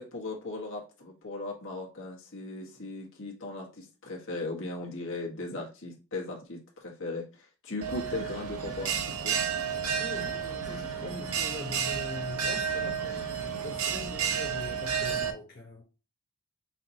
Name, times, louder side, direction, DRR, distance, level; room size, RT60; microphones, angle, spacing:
voice 1, 0.0-9.4, left 2 dB, 60° left, 1.4 m, -38 dB
Bell, 7.8-15.3, right 7 dB, 90° right, 0.7 m, -31 dB
voice 2, 9.9-15.8, left 2 dB, 45° left, 0.9 m, -42 dB
5.7 x 2.9 x 2.7 m
head